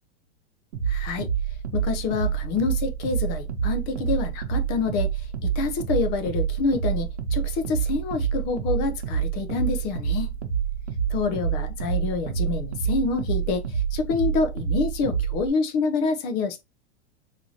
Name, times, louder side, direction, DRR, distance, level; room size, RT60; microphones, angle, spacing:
sound 1, 0.7-15.5, right 8 dB, 85° right, 0.9 m, -28 dB
voice 1, 0.9-1.3 1.7-5.1 5.4-10.3 11.1-16.6, left 4 dB, 30° left, 0.6 m, -27 dB
4.2 x 2.8 x 2.7 m
supercardioid pair, 155°, 33 cm